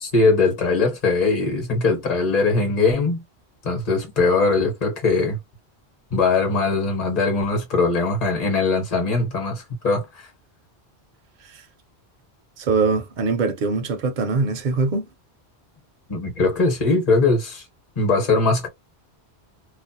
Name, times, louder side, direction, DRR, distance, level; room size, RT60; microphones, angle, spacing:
voice 1, 0.0-3.2 3.6-5.4 6.1-10.3 16.1-17.6 18.0-18.7, left 3 dB, 40° left, 1.0 m, -21 dB
voice 2, 12.6-15.1, right 4 dB, 55° right, 0.6 m, -22 dB
2.4 x 2.1 x 2.7 m
omnidirectional pair, 1.1 m